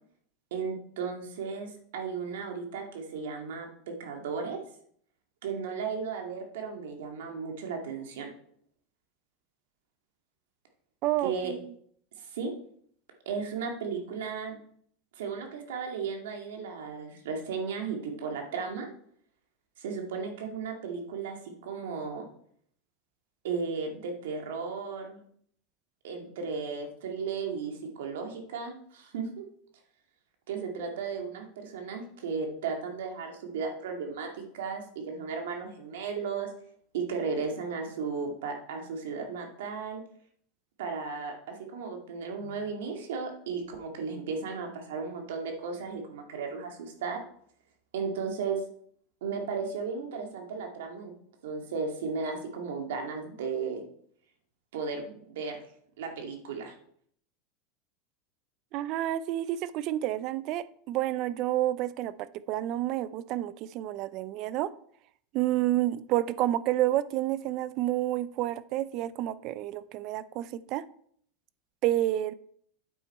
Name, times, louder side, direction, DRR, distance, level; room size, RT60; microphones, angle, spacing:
voice 1, 0.5-3.7 4.0-4.6 5.4-8.3 11.2-11.5 12.2-12.5 13.3-14.6 15.2-18.9 19.8-22.3 23.4-25.2 26.0-29.4 30.5-36.5 36.9-40.0 40.8-47.2 47.9-48.6 49.2-51.1 51.4-53.8 54.7-55.6 56.0-56.7, right 5 dB, 90° right, 3 dB, 2.0 m, -35 dB
voice 2, 11.0-11.7 58.7-64.7 65.3-70.8 71.8-72.3, right 14 dB, 40° right, 17 dB, 0.4 m, -29 dB
8.7 x 7.8 x 4.3 m, 0.64 s
supercardioid pair, 160°, 0 cm